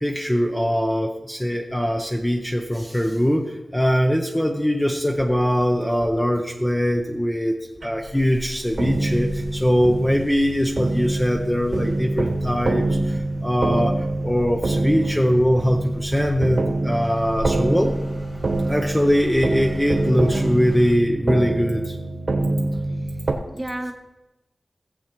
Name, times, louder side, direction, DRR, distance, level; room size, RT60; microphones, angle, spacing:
voice 1, 0.0-13.2 13.4-13.9 14.2-17.9 18.7-21.9, equal, 5° left, 2 dB, 0.7 m, -21 dB
sound 1, 5.2-5.3 6.0-6.1 6.9-7.0 7.8-8.0 8.8-23.3, right 2 dB, 65° right, 1.3 m, -25 dB
sound 2, 8.0-21.0, left 1 dB, 35° left, 1.0 m, -40 dB
voice 2, 22.9-23.3 23.5-23.9, right 1 dB, 15° right, 4 dB, 1.0 m, -32 dB
18.0 x 7.7 x 3.0 m, 0.99 s
wide cardioid pair, 90°, 0 cm